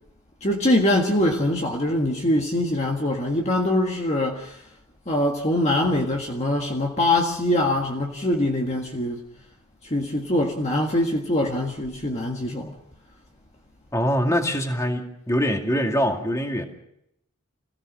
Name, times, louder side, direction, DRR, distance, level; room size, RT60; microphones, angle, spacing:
voice 1, 0.4-4.6 5.1-9.2 9.8-12.7, left 1 dB, 30° left, 1.7 m, -23 dB
voice 2, 13.9-16.6, equal, 15° left, 2.3 m, -23 dB
26.0 x 16.5 x 6.3 m
head